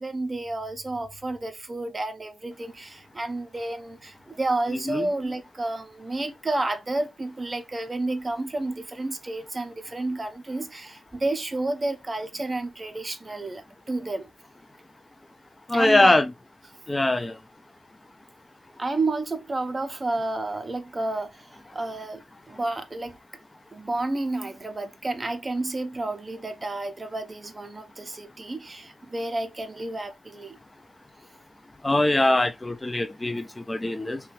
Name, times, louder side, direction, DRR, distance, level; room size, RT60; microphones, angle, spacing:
voice 1, 0.0-14.3 15.7-16.2 18.8-22.2 22.5-23.2 23.7-30.6, right 2 dB, 35° right, 0.5 m, -31 dB
voice 2, 15.7-16.2 16.9-17.4 31.8-34.2, left 2 dB, 25° left, 0.3 m, -22 dB
2.7 x 2.2 x 2.9 m
supercardioid pair, 40°, 0 cm